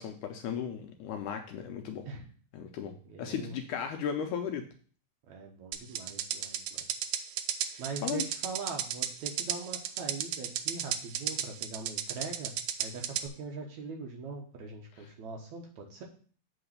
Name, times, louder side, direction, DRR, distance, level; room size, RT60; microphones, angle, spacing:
voice 1, 0.0-2.1 2.5-4.6 7.7-8.2 15.0-15.1, left 8 dB, 75° left, 5 dB, 2.0 m, -36 dB
voice 2, 3.1-3.5 5.3-7.2 7.8-12.5 12.8-16.0, right 4 dB, 65° right, 2 dB, 2.1 m, -42 dB
sound 1, 5.7-13.3, right 10 dB, 85° right, 1.8 m, -33 dB
7.9 x 3.9 x 6.7 m, 0.43 s
omnidirectional pair, 4.1 m